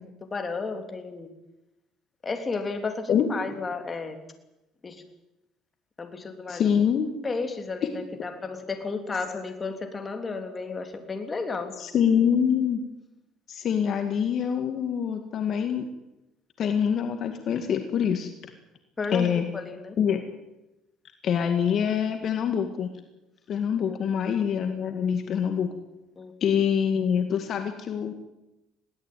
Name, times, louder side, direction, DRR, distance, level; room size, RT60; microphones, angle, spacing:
voice 1, 0.2-1.3 2.2-4.2 4.8-5.0 6.0-6.7 7.2-11.7 19.0-20.0 23.8-24.0 26.2-26.3, left 4 dB, 25° left, 6 dB, 3.4 m, -33 dB
voice 2, 6.5-7.1 11.8-12.8 13.5-15.9 16.6-18.3 19.1-19.5 20.0-20.2 21.2-22.9 23.5-25.7 26.4-28.1, left 8 dB, 50° left, 6 dB, 2.1 m, -25 dB
21.5 x 17.5 x 9.3 m, 0.96 s
cardioid pair, 120°, 0 cm